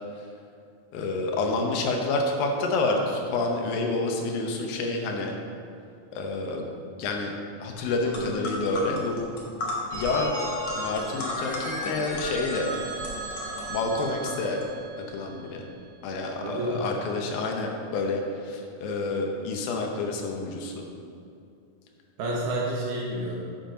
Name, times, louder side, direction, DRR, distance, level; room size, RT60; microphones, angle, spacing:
voice 1, 0.9-5.3 6.1-6.7 7.0-7.3 7.6-9.3 9.9-10.3 10.8-12.7 13.7-14.6 15.1-15.6 16.0-20.7, left 3 dB, 75° left, 2 dB, 2.5 m, -28 dB
sound 1, 7.8-7.9 8.1-14.6, left 1 dB, 60° left, 1.6 m, -36 dB
Telephone, 9.9-15.7, right 1 dB, 40° right, 2.3 m, -36 dB
voice 2, 16.4-16.8 22.2-23.4, right 1 dB, 75° right, -3 dB, 3.0 m, -29 dB
7.9 x 7.2 x 5.0 m, 2.5 s
omnidirectional pair, 4.6 m